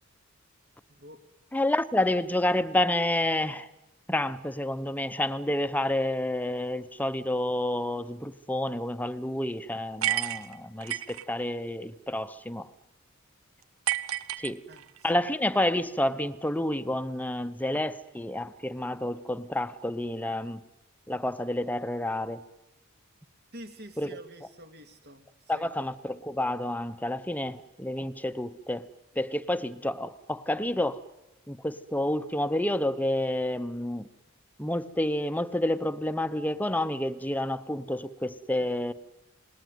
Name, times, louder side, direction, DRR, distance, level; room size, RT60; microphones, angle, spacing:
voice 1, 0.9-1.2 14.7-14.9 15.1-15.2 23.5-25.7, equal, 50° right, 2.5 m, -47 dB
voice 2, 1.5-3.7 4.1-12.7 14.4-14.6 15.0-20.6 21.1-22.4 24.0-24.1 25.5-28.8 29.2-31.0 31.5-34.1 34.6-38.9, left 1 dB, 10° left, 0.9 m, -29 dB
sound 1, 10.0-11.2 13.9-15.0, right 13 dB, 85° right, 1.0 m, -30 dB
27.5 x 20.0 x 9.4 m
head